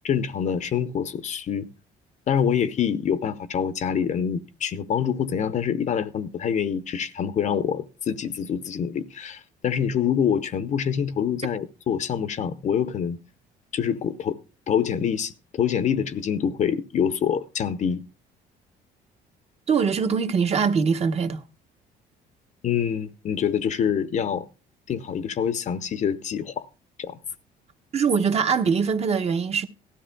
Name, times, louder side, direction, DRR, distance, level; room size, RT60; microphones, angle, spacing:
voice 1, 0.0-1.7 2.3-13.2 13.7-14.4 14.7-18.0 22.6-24.5 24.9-26.7 27.0-27.2, left 8 dB, 45° left, 0.7 m, -26 dB
voice 2, 19.7-21.4 27.9-29.7, right 6 dB, 40° right, 1.0 m, -22 dB
17.5 x 13.0 x 2.2 m
cardioid pair, 110°, 17 cm